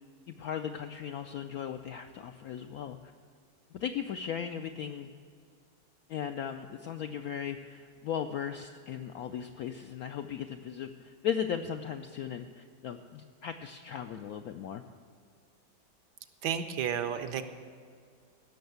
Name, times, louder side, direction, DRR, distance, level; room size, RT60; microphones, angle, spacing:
voice 1, 0.3-3.1 3.7-5.1 6.1-14.8, left 8 dB, 75° left, 6 dB, 0.8 m, -37 dB
voice 2, 16.4-17.4, right 8 dB, 70° right, 10 dB, 1.2 m, -31 dB
16.0 x 6.3 x 8.0 m, 2.1 s
omnidirectional pair, 2.1 m